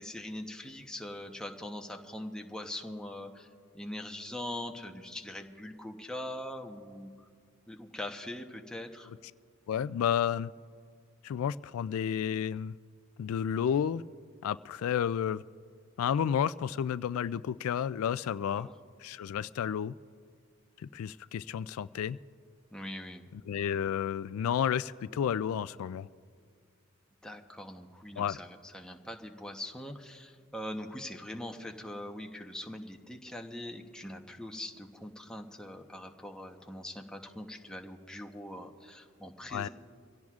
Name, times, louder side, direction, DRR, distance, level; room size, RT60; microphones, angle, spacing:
voice 1, 0.0-3.5 3.7-7.3 7.7-9.1 18.6-18.7 22.7-23.3 27.2-39.7, left 1 dB, 5° left, 2 dB, 0.8 m, -42 dB
voice 2, 9.7-10.5 11.2-12.8 13.2-14.0 14.4-15.4 16.0-18.7 19.0-19.9 20.8-22.2 23.3-26.1 28.2-28.4 39.5-39.7, left 8 dB, 80° left, 16 dB, 0.3 m, -31 dB
24.5 x 16.5 x 2.4 m, 2.1 s
head